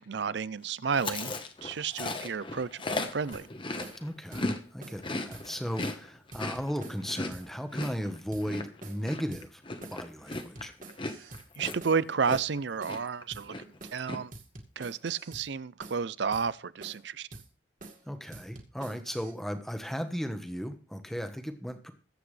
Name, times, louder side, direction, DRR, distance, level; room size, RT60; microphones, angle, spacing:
voice 1, 0.0-1.3 1.6-3.5 11.6-13.5 13.9-14.3 14.8-17.3, right 6 dB, 70° right, 0.5 m, -31 dB
Chewing mastication, 0.9-4.6 4.9-12.6 12.9-13.2 13.5-14.2, left 2 dB, 25° left, 1.2 m, -37 dB
sound 1, 3.3-3.5 3.8-4.0 4.3-4.5 4.8-5.0 5.3-5.5 5.8-6.0 6.3-7.5 7.8-8.0 8.3-8.5 8.8-9.0 9.3-9.5 9.8-10.0 10.3-11.5 11.8-12.0 12.3-12.5 12.8-13.0 13.3-13.5 13.8-14.0 14.3-15.5 15.8-16.0 16.3-16.5 16.8-17.1 17.3-17.5 17.8-18.0 18.3-19.3, right 2 dB, 45° right, 2.1 m, -47 dB
voice 2, 4.0-9.6 9.9-10.7 18.1-21.9, equal, ahead, 1.2 m, -36 dB
21.0 x 8.1 x 3.3 m
head